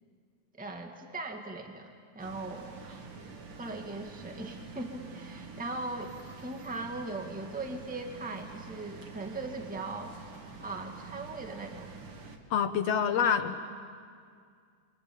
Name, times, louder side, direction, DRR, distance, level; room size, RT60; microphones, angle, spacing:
voice 1, 0.6-2.8 3.5-10.1 10.6-11.9 13.2-13.4, right 2 dB, 5° right, 3 dB, 1.6 m, -39 dB
sound 1, 2.2-12.4, right 4 dB, 50° right, 2.7 m, -47 dB
voice 2, 12.5-13.5, left 8 dB, 65° left, 9 dB, 1.9 m, -26 dB
28.0 x 23.5 x 8.9 m, 2.1 s
omnidirectional pair, 3.4 m